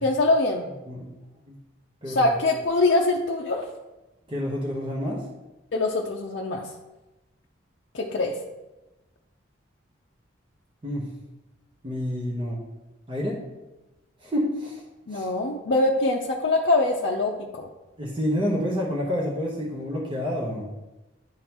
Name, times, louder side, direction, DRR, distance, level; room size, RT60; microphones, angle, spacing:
voice 1, 0.0-0.7 2.1-3.6 5.7-6.7 7.9-8.3 15.1-17.7, left 2 dB, 60° left, -2 dB, 0.5 m, -23 dB
voice 2, 2.0-2.3 4.3-5.2 10.8-11.1 11.8-12.6 13.1-13.4 14.2-14.8 15.1-15.3 18.0-20.6, equal, 25° right, -4 dB, 0.9 m, -28 dB
10.5 x 3.7 x 2.9 m, 1.0 s
head